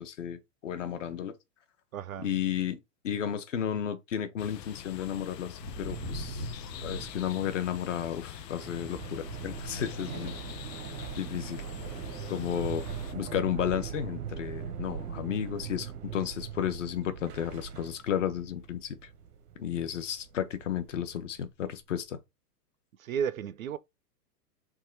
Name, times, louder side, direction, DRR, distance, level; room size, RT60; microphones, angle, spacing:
voice 1, 0.0-1.4 2.2-6.5 6.8-10.3 11.2-11.6 12.3-12.9 13.1-19.0 19.6-22.2, left 9 dB, 50° left, 0.7 m, -33 dB
voice 2, 1.9-2.3 23.0-23.8, right 8 dB, 60° right, 0.5 m, -33 dB
sound 1, 4.4-13.1, left 11 dB, 85° left, 0.7 m, -44 dB
Thunder, 5.6-18.5 18.8-19.4 19.7-21.2, right 1 dB, 10° left, 0.4 m, -46 dB
sound 2, 8.6-21.4, right 8 dB, 90° right, 0.9 m, -41 dB
3.7 x 2.9 x 4.4 m
hypercardioid pair, 175°, 48 cm